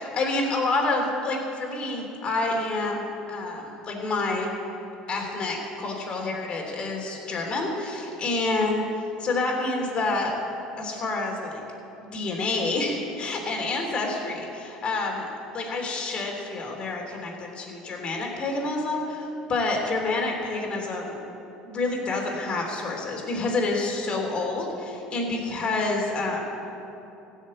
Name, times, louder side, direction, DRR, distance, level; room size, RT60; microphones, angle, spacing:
voice 1, 0.0-4.5 5.1-8.8 9.2-10.4 10.8-11.6 12.0-15.3 15.5-21.2 21.6-26.4, left 2 dB, 40° left, 0 dB, 3.2 m, -28 dB
16.0 x 6.6 x 8.5 m, 3.0 s
supercardioid pair, 95°, 3 cm